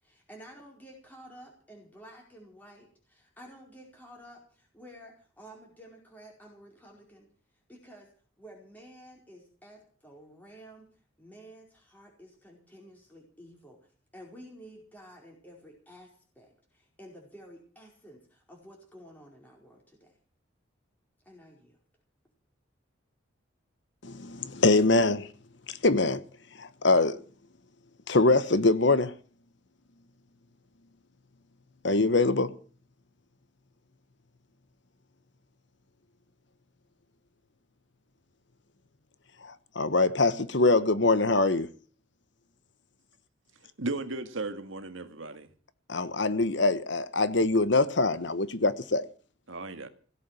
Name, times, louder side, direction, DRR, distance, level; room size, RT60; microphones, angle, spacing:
voice 1, 0.0-7.3 7.7-8.1 8.4-10.9 11.2-20.1 21.2-21.8, equal, 10° left, 4.8 m, -51 dB
voice 2, 24.0-25.3 25.7-26.2 26.6-27.2 28.1-29.1 31.8-32.5 39.4-41.7 45.9-49.0, left 3 dB, 60° left, 1.1 m, -24 dB
voice 3, 43.8-45.5 49.5-49.9, right 2 dB, 75° right, 1.8 m, -35 dB
17.0 x 8.6 x 9.1 m
head